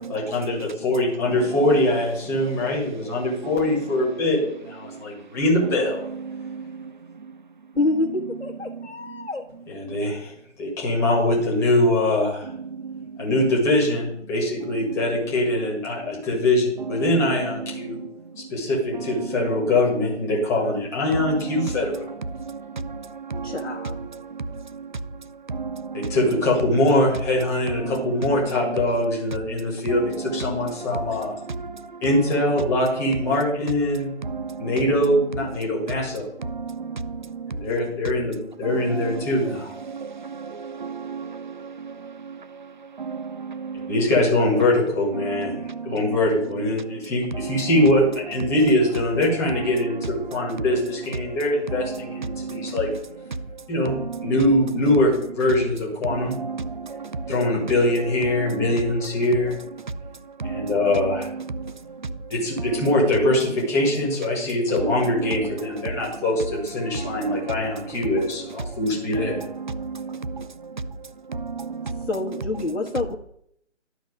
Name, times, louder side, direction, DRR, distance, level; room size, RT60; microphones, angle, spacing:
voice 1, 0.1-6.0 9.7-10.3 10.6-12.5 13.2-18.0 18.4-22.1 25.9-31.4 32.0-34.1 34.6-36.3 37.5-39.7 43.9-45.5 45.9-52.9 53.7-56.3 57.3-59.5 60.4-61.3 62.3-69.4, left 1 dB, 10° left, 1.6 m, -23 dB
voice 2, 6.3-6.8 12.7-13.0 14.9-15.0 17.8-18.0 21.6-21.7 22.4-23.5 24.3-24.9 25.5-26.2 31.5-31.8 34.3-34.7 36.5-37.5 38.6-39.1 39.9-42.4 43.0-43.9 45.5-45.9 52.3-52.8 54.1-54.2 56.1-57.3 58.4-58.6 60.4-60.7 61.5-61.7 66.9-67.5 69.6-70.5 71.3-72.1, right 4 dB, 40° right, 0.5 m, -33 dB
voice 3, 7.8-9.4 23.4-24.0 72.1-73.2, left 2 dB, 75° left, 1.3 m, -27 dB
12.0 x 4.2 x 5.0 m
figure-of-eight pair, 145°, 37 cm